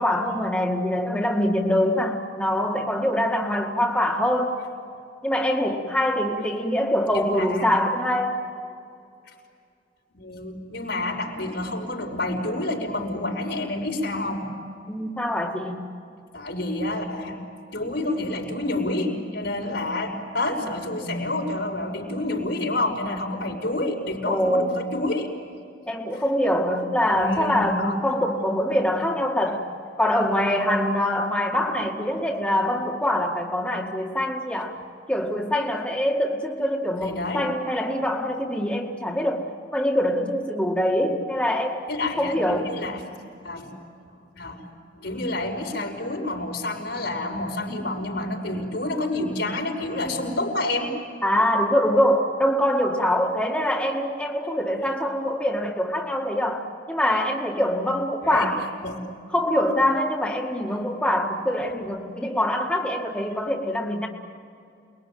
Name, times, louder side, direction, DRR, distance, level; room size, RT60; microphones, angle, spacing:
voice 1, 0.0-4.6 5.2-8.4 14.9-15.8 20.6-20.7 21.0-21.3 24.3-24.8 25.9-29.7 30.0-34.8 35.1-41.9 42.2-42.7 51.2-58.6 59.3-64.1, left 1 dB, 5° left, -1 dB, 2.0 m, -24 dB
voice 2, 7.1-7.7 10.1-14.5 16.3-17.4 17.7-25.3 27.1-28.0 37.0-37.5 41.9-43.0 43.4-43.7 44.4-44.6 45.0-50.9 58.2-58.5 58.8-59.0, left 2 dB, 75° left, 1 dB, 5.6 m, -28 dB
28.5 x 21.5 x 9.3 m, 2.4 s
head